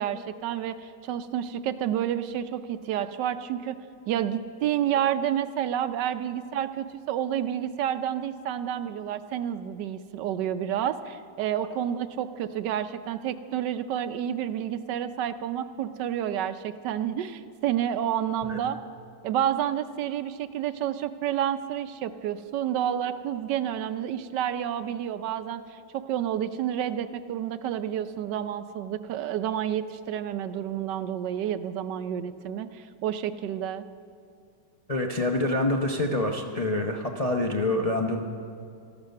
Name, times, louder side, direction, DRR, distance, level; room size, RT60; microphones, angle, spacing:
voice 1, 0.0-3.8 4.1-18.8 19.2-33.8, right 10 dB, 75° right, 11 dB, 1.2 m, -29 dB
voice 2, 34.9-38.2, left 2 dB, 35° left, 1 dB, 0.6 m, -26 dB
14.0 x 12.0 x 6.5 m, 2.4 s
omnidirectional pair, 2.0 m